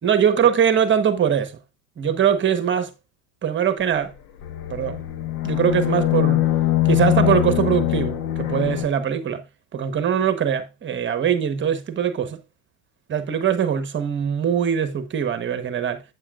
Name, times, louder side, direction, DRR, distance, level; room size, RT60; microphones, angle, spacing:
voice 1, 0.0-1.6 2.0-2.9 3.4-4.1 4.7-5.0 5.4-6.4 6.9-9.4 9.7-12.4 13.1-16.0, right 8 dB, 25° right, 1.3 m, -22 dB
sound 1, 4.4-8.9, left 14 dB, 80° left, 1.6 m, -22 dB
11.0 x 8.6 x 2.5 m
supercardioid pair, 115°, 45 cm